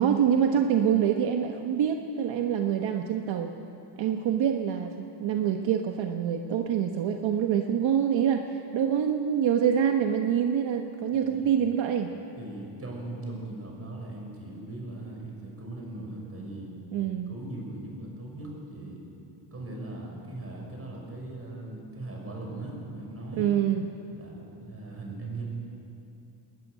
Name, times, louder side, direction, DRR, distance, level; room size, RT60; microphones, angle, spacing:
voice 1, 0.0-3.5 4.0-12.1 16.9-17.3 23.4-23.9, right 8 dB, 70° right, 4 dB, 1.3 m, -26 dB
voice 2, 11.1-11.5 12.4-16.7 17.3-19.0 19.5-23.4 24.1-25.4, right 2 dB, 30° right, -1 dB, 6.5 m, -39 dB
21.0 x 14.0 x 9.6 m, 2.8 s
cardioid pair, 120°, 48 cm